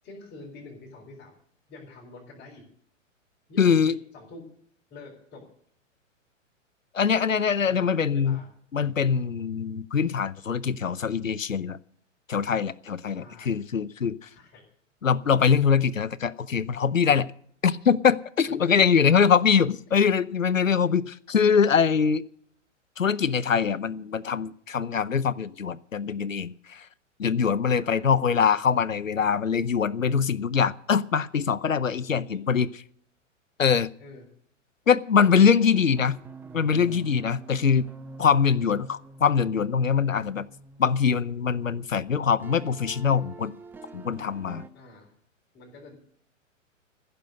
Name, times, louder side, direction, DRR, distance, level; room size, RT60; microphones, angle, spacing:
voice 1, 0.0-1.3 1.7-2.6 3.5-4.4 4.9-5.4 7.6-8.5 13.0-13.6 14.3-14.6 18.5-19.3 27.7-28.1 31.9-32.5 34.0-34.3 35.2-35.8 44.7-45.1 45.5-45.9, left 2 dB, 25° left, -6 dB, 4.6 m, -46 dB
voice 2, 3.6-3.9 6.9-8.4 8.7-11.8 12.3-14.2 15.0-17.3 17.6-22.2 23.0-26.8 27.2-32.8 33.6-33.9 34.9-36.1 36.5-37.9 38.2-40.5 40.8-43.6 43.9-44.6, left 6 dB, 90° left, 18 dB, 0.7 m, -23 dB
sound 1, 35.6-42.1 42.4-44.7, right 3 dB, 5° right, 0.5 m, -46 dB
15.0 x 6.8 x 9.2 m, 0.63 s
figure-of-eight pair, 110°, 38 cm